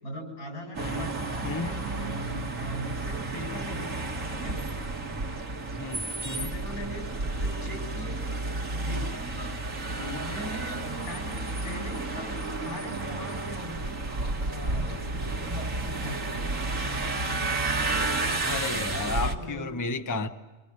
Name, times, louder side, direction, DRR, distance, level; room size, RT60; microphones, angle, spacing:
voice 1, 0.0-4.6 6.3-7.0 7.4-8.2 8.8-9.5 10.2-14.0 14.4-15.0 15.4-16.5 18.8-19.7, equal, 90° left, 3 dB, 8.8 m, -40 dB
sound 1, 0.7-19.3, right 2 dB, 60° right, 2.7 m, -31 dB
voice 2, 0.8-1.1 1.4-1.7 5.7-6.5 8.9-9.1 10.0-10.2 18.4-20.3, left 3 dB, 15° left, 7 dB, 1.0 m, -33 dB
27.5 x 22.5 x 8.8 m, 1.2 s
omnidirectional pair, 1.5 m